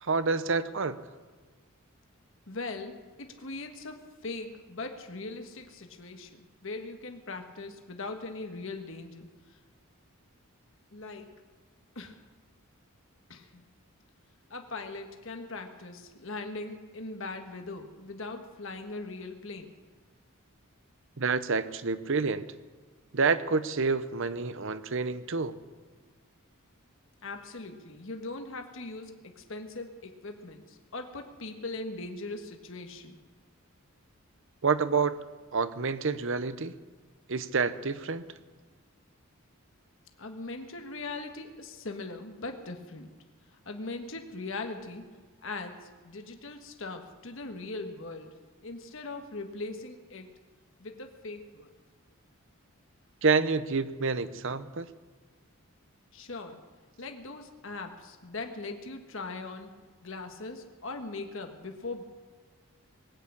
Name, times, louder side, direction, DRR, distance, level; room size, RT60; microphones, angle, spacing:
voice 1, 0.0-1.0 21.2-22.4 23.1-25.6 34.6-35.2 35.5-36.7 37.3-38.3 53.2-54.9, right 4 dB, 60° right, 14 dB, 0.8 m, -28 dB
voice 2, 2.5-4.0 4.2-9.3 10.9-11.3 11.9-12.2 13.3-13.7 14.5-19.7 27.2-33.2 40.2-43.1 43.5-45.1 45.4-48.4 48.6-50.3 50.8-51.7 56.1-56.6 57.0-59.7 60.0-62.0, left 3 dB, 60° left, 5 dB, 1.4 m, -40 dB
20.0 x 8.5 x 8.6 m, 1.5 s
head